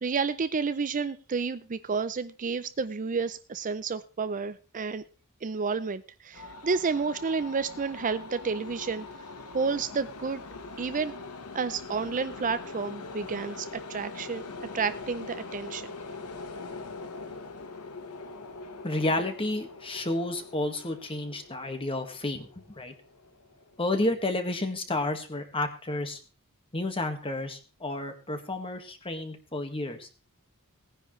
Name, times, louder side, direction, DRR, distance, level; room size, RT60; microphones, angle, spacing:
voice 1, 0.0-5.0 5.4-9.1 9.5-10.4 10.8-11.1 11.5-14.4 14.7-15.9, right 5 dB, 35° right, 13 dB, 0.5 m, -30 dB
sound 1, 6.3-24.1, left 3 dB, 80° left, 1.2 m, -43 dB
voice 2, 18.8-22.9 23.8-26.2 26.7-30.1, left 2 dB, 25° left, 6 dB, 1.7 m, -31 dB
18.5 x 10.0 x 3.2 m, 0.33 s
head